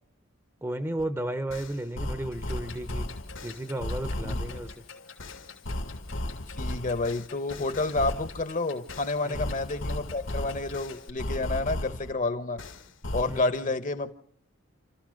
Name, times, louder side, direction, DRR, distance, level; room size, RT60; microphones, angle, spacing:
voice 1, 0.6-3.1 3.4-4.8 9.2-9.5 13.3-13.7, right 1 dB, 10° right, 10 dB, 0.9 m, -34 dB
sound 1, 1.0-1.1 1.5-4.7 5.2-8.4 8.9-12.1 12.6-13.4, left 1 dB, 65° left, 1.4 m, -35 dB
Clock, 2.3-11.1, left 6 dB, 90° left, 2.8 m, -49 dB
voice 2, 6.5-12.6 13.1-14.2, left 2 dB, 40° left, 11 dB, 1.1 m, -29 dB
29.0 x 14.0 x 6.5 m, 0.66 s
head